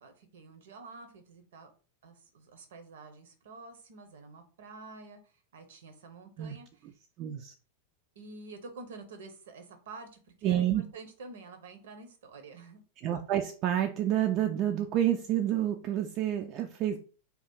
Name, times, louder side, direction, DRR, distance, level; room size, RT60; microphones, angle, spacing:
voice 1, 0.0-1.7 2.0-5.2 5.5-6.8 8.2-12.8, right 3 dB, 60° right, 7 dB, 0.7 m, -48 dB
voice 2, 7.2-7.5 10.4-10.8 13.0-17.0, right 11 dB, 40° right, 5 dB, 0.3 m, -29 dB
2.8 x 2.4 x 3.5 m, 0.38 s
figure-of-eight pair, 90°, 0 cm